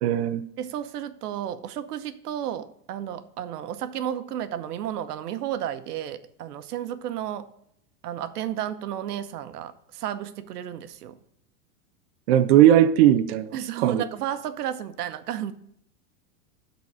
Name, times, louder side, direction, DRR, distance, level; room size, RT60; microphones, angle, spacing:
voice 1, 0.0-0.4 12.3-13.6 13.8-14.0, right 11 dB, 45° right, 0.5 m, -18 dB
voice 2, 0.6-7.5 8.0-11.2 13.5-15.5, right 10 dB, 85° right, 1.0 m, -32 dB
12.0 x 4.1 x 5.5 m
supercardioid pair, 165°, 46 cm